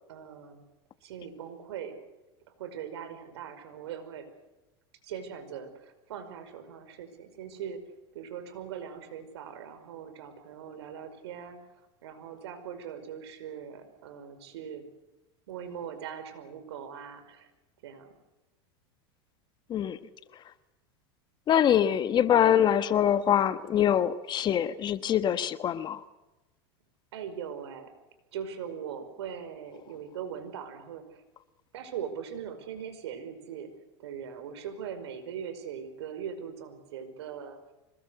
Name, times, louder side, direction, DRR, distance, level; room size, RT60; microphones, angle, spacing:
voice 1, 0.1-0.6 1.0-2.0 2.6-4.3 5.0-7.8 8.1-11.6 12.0-14.8 15.5-17.5 17.8-18.1 27.1-27.9 28.3-31.2 31.7-33.7 34.0-37.6, right 8 dB, 80° right, 9 dB, 5.3 m, -40 dB
voice 2, 21.5-26.0, left 10 dB, 35° left, 12 dB, 1.3 m, -24 dB
25.5 x 20.5 x 8.1 m, 1.1 s
supercardioid pair, 120°, 14 cm